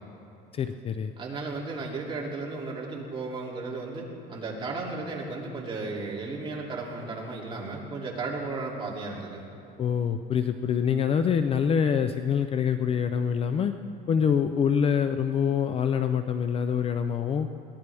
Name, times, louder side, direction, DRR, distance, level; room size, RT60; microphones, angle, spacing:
voice 1, 0.5-1.1 9.8-13.7 14.1-17.5, left 7 dB, 30° left, 9 dB, 0.5 m, -25 dB
voice 2, 1.2-9.4, right 3 dB, 25° right, -3 dB, 2.8 m, -34 dB
22.0 x 16.0 x 3.5 m, 2.8 s
cardioid pair, 140°, 19 cm